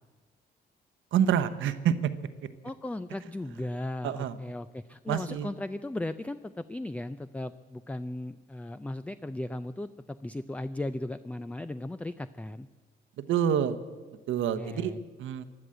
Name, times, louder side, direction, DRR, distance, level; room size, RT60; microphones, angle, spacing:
voice 1, 1.1-2.1 4.0-4.4 5.1-5.5 13.2-13.8 14.3-14.9 15.2-15.5, right 9 dB, 80° right, 10 dB, 1.0 m, -27 dB
voice 2, 2.6-12.7 14.6-15.0, left 1 dB, 5° left, 13 dB, 0.4 m, -36 dB
16.0 x 11.0 x 7.7 m, 1.4 s
cardioid pair, 90°, 20 cm